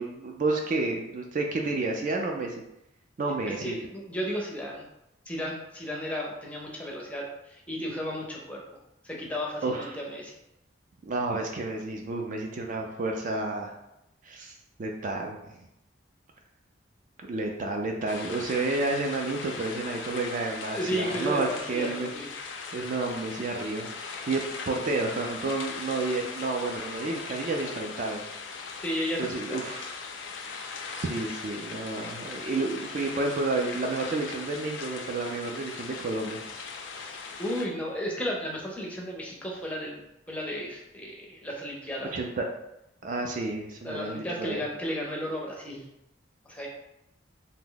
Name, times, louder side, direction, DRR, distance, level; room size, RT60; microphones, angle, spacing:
voice 1, 0.0-2.6 3.2-3.8 9.6-10.0 11.1-13.7 14.2-14.5 14.8-15.4 17.2-22.1 22.7-28.2 29.2-29.9 31.0-36.4 42.1-42.5 43.0-44.6, right 3 dB, 45° right, 2 dB, 0.3 m, -30 dB
voice 2, 3.6-4.9 5.3-8.6 9.0-10.3 20.7-22.3 28.8-29.7 36.9-40.0 40.3-42.2 43.8-45.8 46.4-46.7, equal, 5° left, -2 dB, 0.5 m, -34 dB
sound 1, 18.1-37.6, left 5 dB, 90° left, 0.4 m, -39 dB
2.7 x 2.1 x 3.8 m, 0.86 s
head